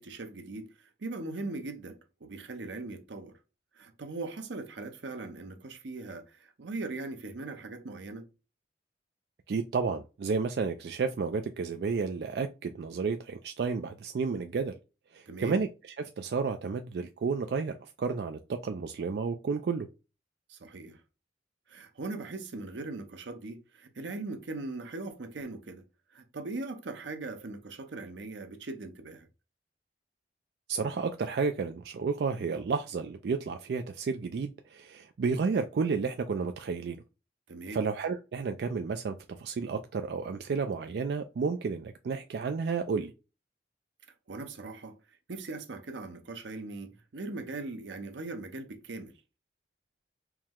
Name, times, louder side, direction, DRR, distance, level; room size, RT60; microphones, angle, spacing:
voice 1, 0.0-3.4 3.7-8.2 15.3-15.6 20.5-21.0 21.7-25.8 26.1-29.3 37.5-37.8 44.3-45.0 45.3-49.2, right 3 dB, 90° right, 0.7 m, -40 dB
voice 2, 9.5-14.7 15.1-19.9 30.7-37.0 37.7-43.1, right 5 dB, 65° right, 0.3 m, -31 dB
4.6 x 2.1 x 3.6 m
head